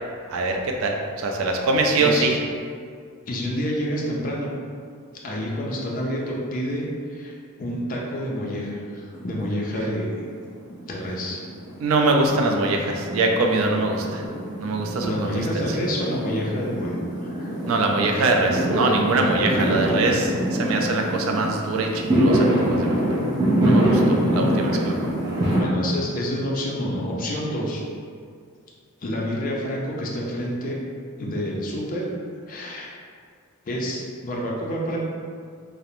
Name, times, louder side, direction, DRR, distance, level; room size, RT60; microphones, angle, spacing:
voice 1, 0.3-2.3 11.8-14.2 14.6-15.7 17.7-23.2 23.6-24.9, right 2 dB, 70° right, 2 dB, 0.3 m, -23 dB
voice 2, 3.3-4.5 5.2-10.2 10.9-11.4 15.0-17.5 19.5-20.0 24.3-25.0 25.5-27.8 29.0-30.7 31.2-32.0 32.5-32.9 33.7-35.0, equal, 40° left, -3 dB, 0.4 m, -28 dB
Fireworks, 9.1-10.1 10.3-25.6, right 1 dB, 20° right, 0.5 m, -25 dB
2.5 x 2.0 x 2.9 m, 2.1 s
head